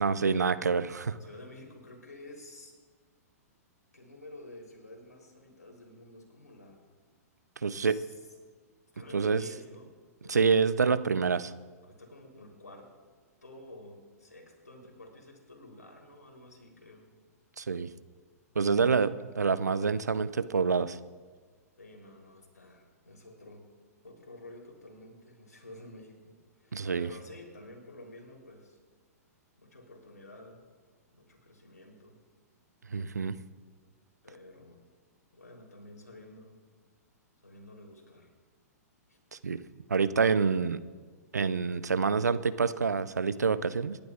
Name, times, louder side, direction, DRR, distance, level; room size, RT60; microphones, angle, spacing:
voice 1, 0.0-1.2 7.6-8.0 9.1-9.4 10.3-11.5 17.6-17.9 18.6-21.0 26.7-27.1 32.9-33.4 39.3-39.6 39.9-40.8 41.3-44.0, right 5 dB, 85° right, 15 dB, 0.5 m, -27 dB
voice 2, 1.2-2.7 3.9-6.9 7.8-8.1 8.9-9.9 10.2-10.5 11.8-12.9 13.4-17.1 18.8-19.1 21.8-23.7 24.0-28.8 29.6-30.6 31.1-32.2 34.2-34.8 35.3-36.6 37.4-38.3 39.1-39.2, left 1 dB, 90° left, 1 dB, 3.3 m, -50 dB
27.0 x 12.0 x 2.4 m, 1.5 s
figure-of-eight pair, 110°, 9 cm